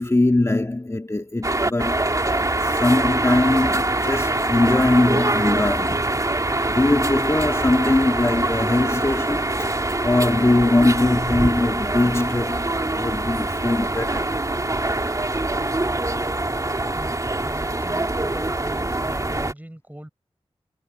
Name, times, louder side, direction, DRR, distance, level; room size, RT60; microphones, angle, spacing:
voice 1, 0.0-6.0 6.7-9.5 10.0-12.6 12.9-14.3, left 2 dB, 25° left, 1.8 m, -21 dB
sound 1, 1.4-19.5, right 2 dB, 30° right, 2.7 m, -24 dB
voice 2, 16.9-20.1, right 1 dB, 15° right, 5.6 m, -40 dB
cardioid pair, 45°, 11 cm